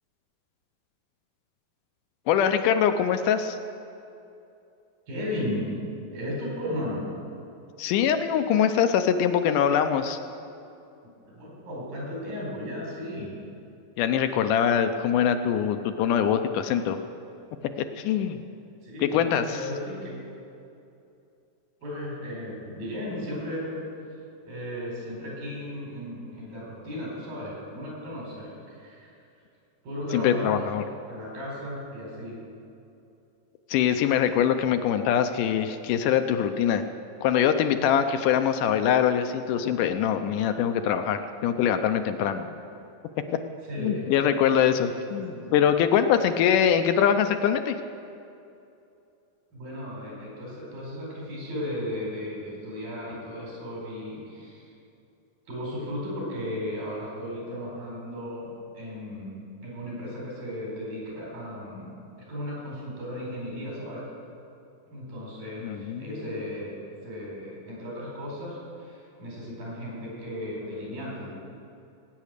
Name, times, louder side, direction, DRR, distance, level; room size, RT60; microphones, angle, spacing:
voice 1, 2.3-3.6 7.8-10.2 14.0-17.0 17.8-18.4 19.0-19.6 30.1-30.8 33.7-36.8 37.2-42.5 43.8-47.8 65.6-66.2, left 8 dB, 75° left, 8 dB, 2.1 m, -23 dB
voice 2, 5.1-5.8 6.1-7.0 11.3-13.3 18.8-20.2 21.8-23.8 24.4-29.1 29.8-30.6 31.1-32.4 43.7-44.1 45.2-45.6 49.5-54.7 55.5-61.9 62.2-64.0 64.9-66.7 67.0-71.3, left 1 dB, 75° right, -4 dB, 6.3 m, -35 dB
19.0 x 9.4 x 6.6 m, 2.7 s
omnidirectional pair, 4.0 m